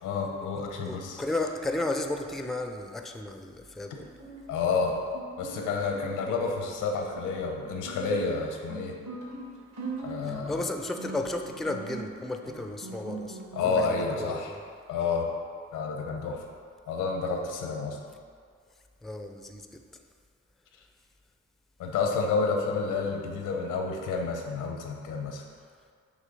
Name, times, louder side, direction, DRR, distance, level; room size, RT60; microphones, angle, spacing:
voice 1, 0.0-1.2 4.5-4.9 5.4-9.0 10.0-10.6 13.5-14.5 14.9-15.3 15.7-16.5 16.9-18.0 21.8-25.4, left 4 dB, 90° left, 2 dB, 0.8 m, -29 dB
voice 2, 0.9-4.1 10.2-14.6 19.0-19.8, left 2 dB, ahead, 5 dB, 0.4 m, -34 dB
Guitar, 4.0-14.0, right 3 dB, 65° right, 1.5 m, -42 dB
6.4 x 3.1 x 5.3 m, 2.1 s
cardioid pair, 80°, 30 cm